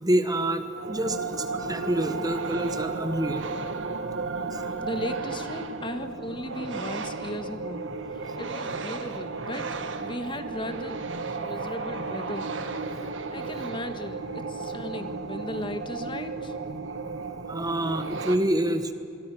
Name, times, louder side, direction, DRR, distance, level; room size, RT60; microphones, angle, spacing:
voice 1, 0.0-3.4 4.5-4.6 17.5-18.9, right 1 dB, 20° right, 9 dB, 1.2 m, -27 dB
sound 1, 0.7-18.4, right 4 dB, 85° right, 1.4 m, -34 dB
voice 2, 4.8-7.9 8.1-9.7 10.0-11.1 11.4-12.5 13.3-16.5, left 1 dB, 25° left, 8 dB, 1.6 m, -36 dB
26.5 x 22.5 x 6.3 m, 2.7 s
head